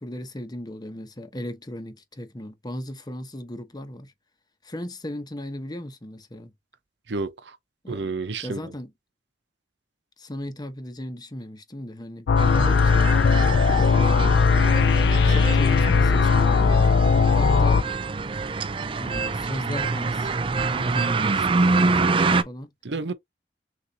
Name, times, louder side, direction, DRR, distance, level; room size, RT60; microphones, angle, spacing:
voice 1, 0.0-4.1 4.6-6.5 7.8-8.1 8.4-8.9 10.2-13.2 14.0-14.4 15.3-16.8 17.3-18.1 19.0-20.3 20.7-22.7, left 1 dB, 25° left, 0.8 m, -36 dB
voice 2, 7.1-7.6 7.9-8.7 22.8-23.1, right 3 dB, 90° right, 0.7 m, -30 dB
sound 1, 12.3-17.8, left 5 dB, 80° left, 0.4 m, -18 dB
sound 2, 12.4-22.4, right 3 dB, 30° right, 0.4 m, -26 dB
6.6 x 2.5 x 2.8 m
head